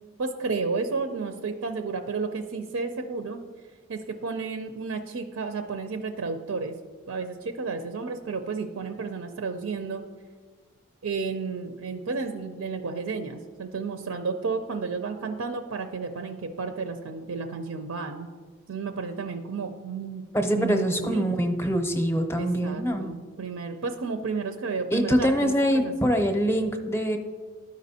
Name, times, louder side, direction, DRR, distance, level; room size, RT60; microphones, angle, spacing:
voice 1, 0.2-3.4 3.9-6.8 7.1-10.0 11.0-18.3 18.7-20.2 20.5-21.5 22.4-25.9, right 4 dB, 80° right, 6 dB, 0.5 m, -32 dB
voice 2, 20.3-23.1 24.9-27.2, equal, 10° left, 6 dB, 0.6 m, -24 dB
12.5 x 5.1 x 2.7 m, 1.5 s
head